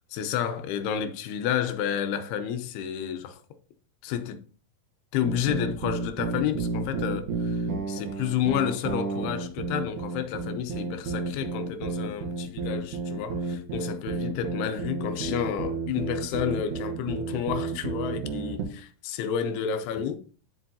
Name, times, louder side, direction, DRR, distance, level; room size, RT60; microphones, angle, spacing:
voice 1, 0.1-3.4 4.0-4.4 5.1-20.2, left 9 dB, 80° left, 2.8 m, -30 dB
sound 1, 5.2-18.8, right 4 dB, 65° right, 2.3 m, -31 dB
12.0 x 5.4 x 2.8 m
omnidirectional pair, 4.6 m